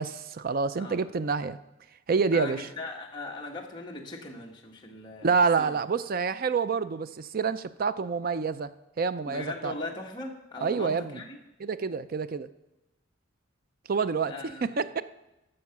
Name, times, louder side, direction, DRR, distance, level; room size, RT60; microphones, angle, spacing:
voice 1, 0.0-1.6 2.1-2.7 5.2-8.7 9.0-9.7 10.6-11.2 11.6-12.5 13.9-14.3 14.6-15.0, right 5 dB, 45° right, 13 dB, 0.4 m, -27 dB
voice 2, 2.3-5.8 9.2-11.4 14.3-14.6, left 2 dB, 20° left, -1 dB, 1.6 m, -39 dB
14.5 x 6.4 x 5.9 m, 0.97 s
head